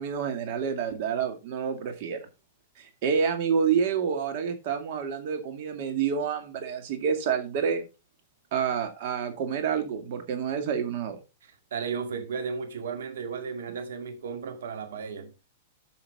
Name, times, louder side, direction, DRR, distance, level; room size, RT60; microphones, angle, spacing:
voice 1, 0.0-2.3 2.8-7.9 8.5-11.2, right 7 dB, 55° right, 2.2 m, -28 dB
voice 2, 11.4-15.3, right 5 dB, 80° right, 2.0 m, -34 dB
8.6 x 5.7 x 4.2 m
hypercardioid pair, 140°, 0 cm